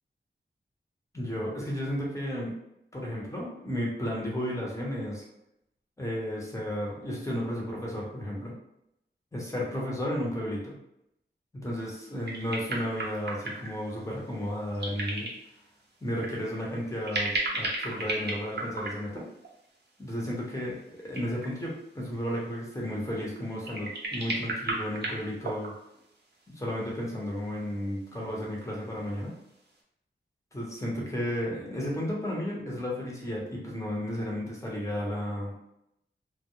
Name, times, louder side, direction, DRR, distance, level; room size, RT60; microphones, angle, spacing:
voice 1, 1.1-2.5 2.9-5.2 6.0-8.5 9.3-10.8 11.5-15.3 16.0-19.3 20.0-25.7 26.5-29.3 30.5-35.5, equal, 15° left, -4 dB, 0.9 m, -33 dB
sound 1, 11.9-12.0 12.2-13.8 14.7-15.5 16.2-16.4 17.0-19.5 20.7-20.8 21.0-21.7 23.6-26.0 26.9-27.0 28.1-28.3, right 2 dB, 55° right, 0.6 m, -33 dB
2.3 x 2.0 x 2.9 m, 0.81 s
wide cardioid pair, 70°, 20 cm